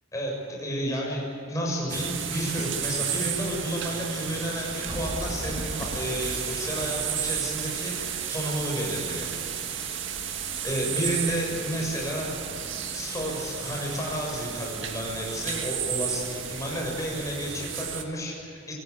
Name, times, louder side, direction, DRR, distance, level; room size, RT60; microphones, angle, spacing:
voice 1, 0.1-9.3 10.6-12.3 12.9-18.7, equal, 15° left, -2 dB, 6.8 m, -31 dB
sound 1, 1.9-18.0, right 8 dB, 60° right, 1.9 m, -33 dB
sound 2, 4.9-8.3, equal, 25° right, 2.6 m, -39 dB
26.5 x 18.0 x 8.5 m, 2.8 s
head